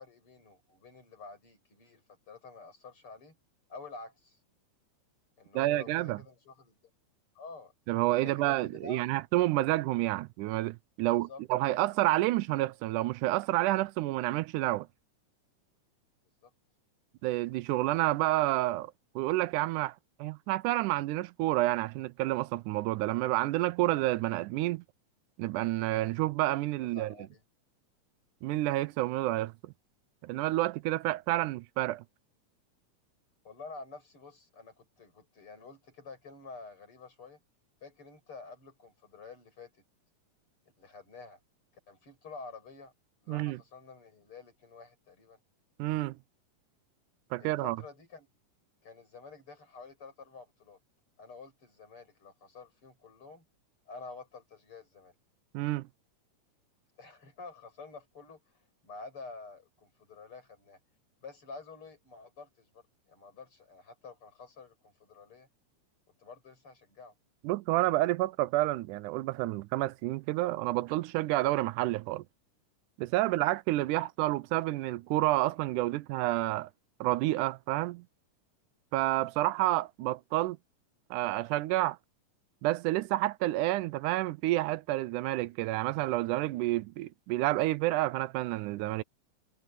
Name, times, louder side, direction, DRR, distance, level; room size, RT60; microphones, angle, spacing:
voice 1, 0.0-3.4 3.7-4.4 5.4-6.8 7.4-7.7 8.2-9.2 11.0-11.4 11.7-11.8 16.4-16.5 26.8-27.4 33.4-37.4 37.8-39.7 40.8-41.4 41.9-42.9 43.2-45.4 47.4-48.3 48.8-50.8 51.2-53.4 53.9-55.1 57.0-58.4 58.8-60.8 61.2-62.8 63.1-65.5 66.2-67.1 73.2-73.4, left 4 dB, 40° left, 7.4 m, -49 dB
voice 2, 5.6-6.2 7.9-14.9 17.2-24.8 25.4-27.1 28.4-29.7 30.2-32.0 43.3-43.6 45.8-46.2 47.3-47.8 55.5-55.9 67.4-72.2 73.0-76.7 77.0-78.1 78.9-80.6 81.1-82.0 82.6-89.0, right 17 dB, 80° right, 2.0 m, -29 dB
omnidirectional pair, 3.7 m